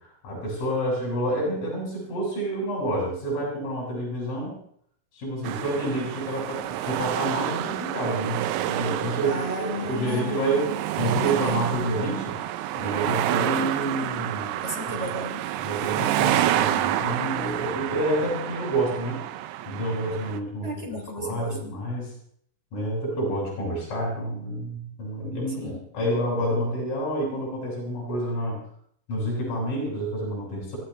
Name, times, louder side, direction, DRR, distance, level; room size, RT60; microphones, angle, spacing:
voice 1, 0.2-4.6 5.1-12.4 12.8-14.5 15.0-15.1 15.6-19.2 19.7-20.7 21.2-22.1 22.7-28.6 29.1-30.8, right 1 dB, 50° left, -3 dB, 8.5 m, -28 dB
sound 1, 5.4-20.4, right 13 dB, 80° right, 2.8 m, -28 dB
voice 2, 9.2-11.9 14.6-15.4 20.6-21.7 25.6-25.8, left 1 dB, 15° right, 0 dB, 3.1 m, -35 dB
24.5 x 14.0 x 3.4 m, 0.64 s
omnidirectional pair, 4.8 m